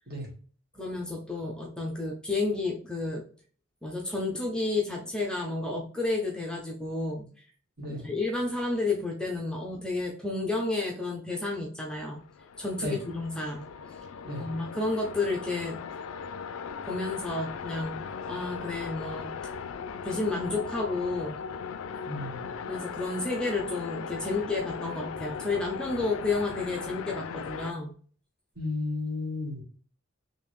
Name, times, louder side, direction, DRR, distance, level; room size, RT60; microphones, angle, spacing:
voice 1, 0.7-3.2 3.8-7.3 7.9-12.2 12.6-13.7 14.4-15.8 16.9-18.0 18.3-19.5 19.9-21.4 22.7-27.9, left 3 dB, 5° left, -1 dB, 0.5 m, -31 dB
sound 1, 12.1-27.7, left 6 dB, 85° left, 0.3 m, -38 dB
voice 2, 22.1-22.5 28.6-29.6, left 2 dB, 50° right, -2 dB, 1.4 m, -33 dB
3.5 x 2.7 x 3.0 m, 0.44 s
head